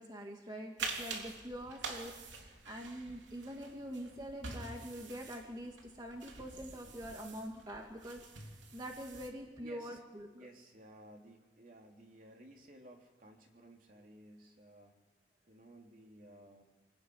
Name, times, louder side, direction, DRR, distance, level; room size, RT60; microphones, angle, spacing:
voice 1, 0.0-10.3, equal, 20° right, 1 dB, 2.4 m, -45 dB
sound 1, 0.8-9.3, right 4 dB, 85° right, 3.4 m, -46 dB
voice 2, 9.6-10.0 10.3-15.0 15.5-16.6, right 1 dB, 45° right, 1 dB, 3.6 m, -56 dB
27.0 x 18.5 x 9.7 m, 1.1 s
head